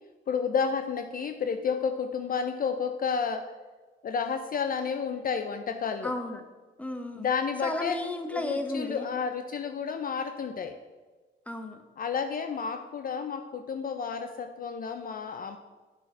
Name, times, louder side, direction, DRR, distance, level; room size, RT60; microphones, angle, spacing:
voice 1, 0.3-3.5 4.0-6.1 7.2-8.0 8.3-10.7 12.0-15.6, left 6 dB, 45° left, 7 dB, 0.6 m, -31 dB
voice 2, 6.0-6.4 6.8-7.3 7.6-9.1 11.5-11.8, left 1 dB, 5° left, 5 dB, 1.2 m, -33 dB
8.5 x 6.2 x 5.7 m, 1.3 s
cardioid pair, 90°, 20 cm